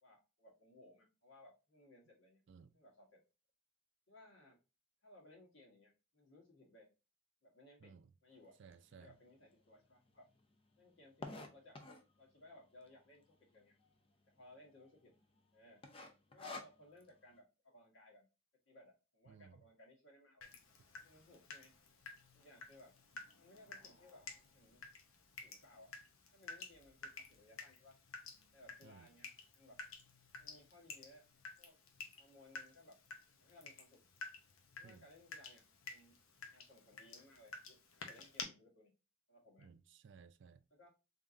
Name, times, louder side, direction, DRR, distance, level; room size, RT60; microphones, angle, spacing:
voice 1, 0.0-2.4 2.7-3.2 4.1-4.6 5.0-6.9 7.4-8.6 8.9-10.2 10.8-11.8 12.2-13.7 14.3-15.1 15.5-15.8 16.3-18.3 18.7-20.5 21.0-21.7 22.3-23.0 23.4-24.8 25.4-26.0 26.3-28.0 28.5-29.8 30.4-31.3 31.6-31.8 32.2-33.0 33.4-34.0 34.8-36.2 36.5-38.9 39.3-39.7 40.7-40.9, left 1 dB, 65° left, 1.6 m, -62 dB
voice 2, 7.8-8.1 8.6-9.2 19.3-19.6 28.8-29.1 34.8-35.1 39.6-40.6, right 6 dB, 60° right, 0.4 m, -59 dB
sound 1, 8.7-8.8 9.4-9.5 9.7-9.8 10.0-12.2 12.8-13.2 13.6-13.7 13.9-14.0 14.5-14.9 15.2-15.4 15.8-17.1, left 2 dB, 25° left, 0.6 m, -49 dB
Water tap faucet / Drip, 20.4-38.4, left 4 dB, 90° left, 0.8 m, -53 dB
3.7 x 3.5 x 2.6 m
head